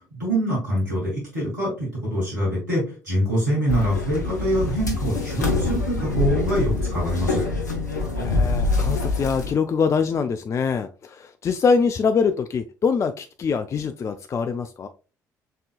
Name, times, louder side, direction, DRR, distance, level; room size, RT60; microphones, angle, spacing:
voice 1, 0.1-7.5, equal, 85° right, 2.4 m, -25 dB
sound 1, 3.7-9.5, left 3 dB, 85° left, 0.7 m, -25 dB
voice 2, 8.2-14.9, left 5 dB, 35° left, 0.4 m, -24 dB
5.4 x 3.7 x 2.3 m
figure-of-eight pair, 50°, 9 cm